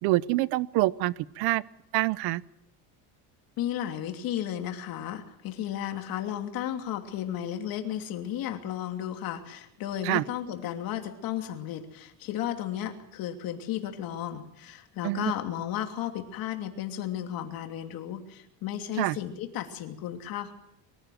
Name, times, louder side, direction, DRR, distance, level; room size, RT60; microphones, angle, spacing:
voice 1, 0.0-1.6 1.9-2.4 10.0-10.2 15.0-15.3 19.0-19.2, right 18 dB, 80° right, 19 dB, 0.8 m, -26 dB
voice 2, 3.6-20.5, left 11 dB, 60° left, 5 dB, 2.9 m, -34 dB
23.5 x 15.5 x 7.7 m, 0.77 s
cardioid pair, 160°, 39 cm